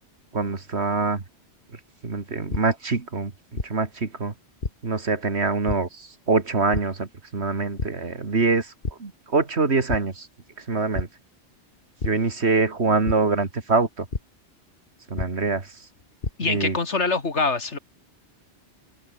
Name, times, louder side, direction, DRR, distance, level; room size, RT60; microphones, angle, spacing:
voice 1, 0.3-1.2 2.0-4.3 4.8-8.7 9.0-10.3 10.7-11.1 12.0-14.1 15.1-15.7 16.5-16.8, right 4 dB, 70° right, 2.5 m, -24 dB
sound 1, 2.5-2.6 3.5-3.7 4.6-4.7 5.7-5.8 6.7-6.8 7.8-7.9 8.3-8.5 8.8-8.9 9.9-10.0 10.9-11.1 12.0-12.1 13.0-13.1 14.1-14.2 15.2-15.3 16.0-16.3, left 3 dB, 50° left, 2.4 m, -27 dB
voice 2, 16.4-17.8, left 4 dB, 80° left, 2.7 m, -24 dB
open air
omnidirectional pair, 1.2 m